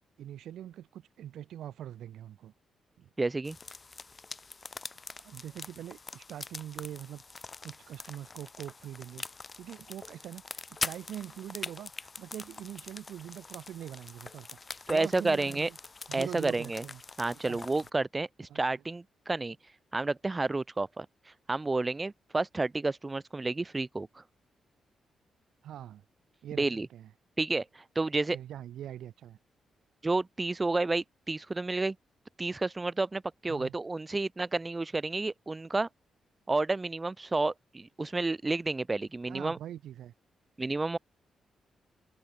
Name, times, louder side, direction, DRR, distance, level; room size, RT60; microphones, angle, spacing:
voice 1, 0.2-2.5 3.0-3.1 5.2-7.2 7.6-9.2 9.6-15.8 16.1-17.0 17.3-17.6 18.5-18.6 25.6-26.0 26.4-27.1 28.3-29.4 33.5-33.7 39.3-40.1, right 11 dB, 80° right, 1.5 m, -43 dB
voice 2, 3.2-3.6 14.9-15.7 16.1-16.8 17.2-19.6 19.9-21.1 21.5-24.2 26.6-26.9 27.4-28.4 30.0-32.0 32.4-35.9 36.5-39.6 40.6-41.0, right 3 dB, 30° right, 2.0 m, -30 dB
sound 1, 3.4-17.9, left 4 dB, 40° left, 4.3 m, -44 dB
open air
supercardioid pair, 50°, 0 cm